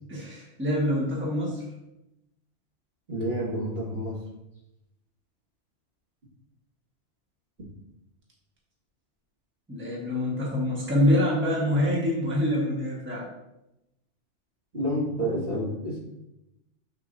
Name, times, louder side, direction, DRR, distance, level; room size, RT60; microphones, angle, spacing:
voice 1, 0.1-1.6 9.7-13.3, left 1 dB, 10° right, -4 dB, 1.4 m, -25 dB
voice 2, 3.1-4.1 14.7-16.0, equal, 50° right, -6 dB, 2.2 m, -29 dB
6.7 x 6.6 x 2.7 m, 0.89 s
omnidirectional pair, 1.3 m